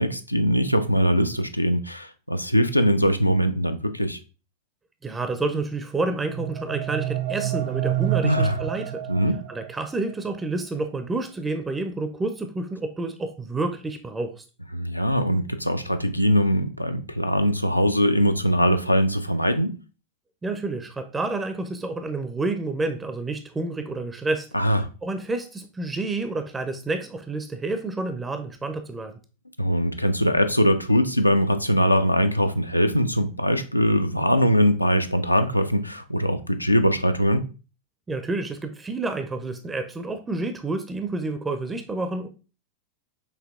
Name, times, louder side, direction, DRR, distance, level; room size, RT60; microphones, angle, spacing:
voice 1, 0.0-4.2 8.2-8.6 9.1-9.4 14.7-19.7 24.5-24.8 29.6-37.4, equal, 85° left, 0.3 m, -21 dB
voice 2, 5.0-9.1 9.5-14.4 20.4-29.1 38.1-42.3, right 3 dB, 15° right, 0.4 m, -29 dB
sound 1, 5.9-9.9, right 12 dB, 55° right, 0.6 m, -29 dB
5.6 x 2.7 x 2.4 m
figure-of-eight pair, 90°, 0 cm